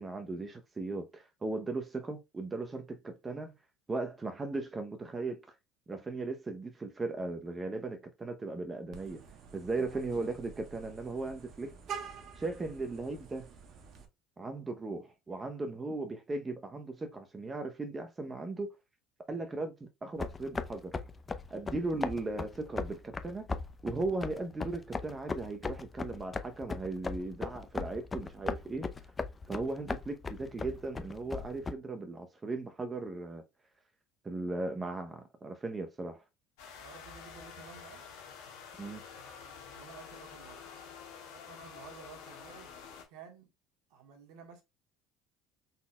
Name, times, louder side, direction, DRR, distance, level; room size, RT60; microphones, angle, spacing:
voice 1, 0.0-3.5 3.9-5.4 5.9-9.2 9.5-11.7 12.4-13.5 14.4-18.7 19.3-20.9 21.5-23.5 23.8-29.1 29.5-33.4 34.2-36.2 38.8-39.0, right 3 dB, 25° right, 0.8 m, -37 dB
Vehicle horn car horn honking, 8.9-14.0, right 6 dB, 55° right, 1.2 m, -47 dB
voice 2, 9.9-10.4 36.8-38.0 39.7-40.6 41.3-42.7 43.1-43.5 43.9-44.6, right 6 dB, 70° right, 1.5 m, -53 dB
sound 1, 20.2-31.7, left 4 dB, 25° left, 0.6 m, -38 dB
sound 2, 36.6-43.0, left 6 dB, 75° left, 1.5 m, -49 dB
5.4 x 4.0 x 2.3 m
hypercardioid pair, 70°, 0 cm